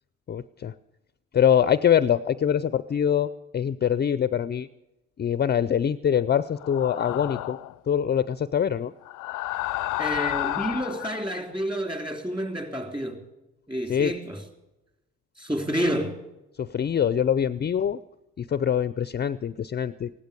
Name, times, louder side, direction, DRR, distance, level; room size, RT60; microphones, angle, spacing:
voice 1, 0.3-0.7 1.3-4.7 5.2-7.6 7.9-8.9 13.9-14.1 16.6-18.0 18.4-20.1, left 9 dB, 35° left, 0.5 m, -24 dB
sound 1, 6.6-7.8 9.0-11.2, left 17 dB, 85° left, 0.5 m, -31 dB
voice 2, 10.0-13.2 13.7-14.4 15.4-16.2, equal, 15° right, 3.2 m, -29 dB
16.0 x 12.0 x 6.7 m
cardioid pair, 90°, 30 cm